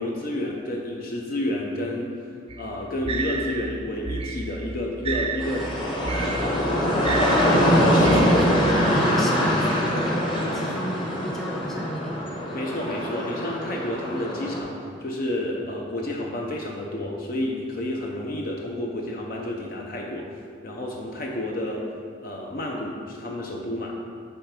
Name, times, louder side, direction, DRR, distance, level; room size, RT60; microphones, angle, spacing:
voice 1, 0.0-2.3 2.6-5.7 6.1-7.3 7.7-8.3 12.5-20.3 20.6-21.9 22.2-23.9, left 1 dB, 50° left, -1 dB, 0.6 m, -30 dB
sound 1, 2.5-8.8, right 4 dB, 30° right, 0.4 m, -31 dB
sound 2, 5.4-14.6, equal, 25° left, 1.0 m, -23 dB
voice 2, 8.1-10.2 10.5-12.1, equal, ahead, -3 dB, 0.7 m, -31 dB
9.0 x 3.3 x 5.1 m, 2.3 s
head